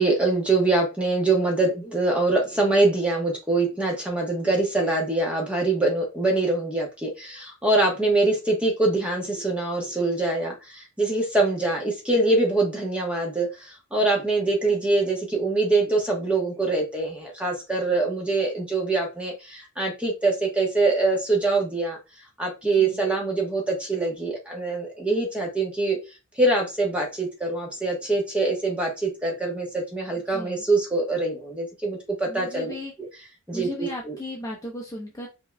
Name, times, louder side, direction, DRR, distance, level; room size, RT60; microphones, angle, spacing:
voice 1, 0.0-22.0 22.4-26.0 26.4-32.7 33.5-34.2, right 2 dB, 5° right, -1 dB, 1.1 m, -24 dB
voice 2, 30.3-30.6 32.3-32.9 33.5-35.3, left 1 dB, 15° left, -3 dB, 0.8 m, -36 dB
5.3 x 2.7 x 2.2 m, 0.27 s
head